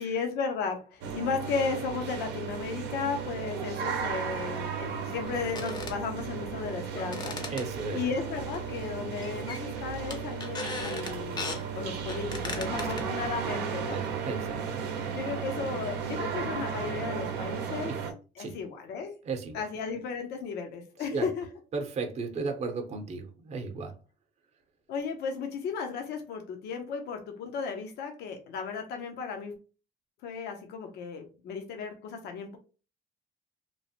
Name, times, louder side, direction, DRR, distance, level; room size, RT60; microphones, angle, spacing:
voice 1, 0.0-7.6 7.9-14.0 15.1-17.9 18.4-19.1 19.5-21.5 24.9-29.5 30.2-32.6, left 5 dB, 75° left, 4 dB, 0.6 m, -35 dB
sound 1, 1.0-18.1, right 7 dB, 85° right, 0.6 m, -35 dB
sound 2, 3.8-3.9 4.4-4.5 5.5-6.0 7.0-8.1 8.5-8.9 9.2-9.8 10.1-11.6 12.1-13.5, left 3 dB, 25° left, 0.5 m, -38 dB
voice 2, 7.5-8.0 12.7-13.1 13.8-14.9 17.9-18.0 18.4-18.5 19.2-19.6 21.0-21.3 21.7-23.9, right 4 dB, 40° right, 5 dB, 0.7 m, -35 dB
3.0 x 2.0 x 2.8 m, 0.34 s
cardioid pair, 110°, 17 cm